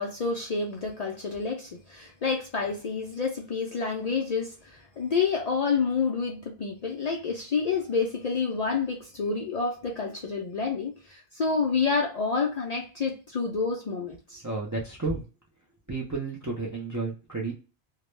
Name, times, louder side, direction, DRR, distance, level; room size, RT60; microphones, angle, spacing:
voice 1, 0.0-14.4, left 5 dB, 55° left, 0.4 m, -29 dB
voice 2, 14.4-15.2 15.9-17.5, right 3 dB, 30° right, 0.3 m, -32 dB
2.3 x 2.0 x 3.0 m
omnidirectional pair, 1.1 m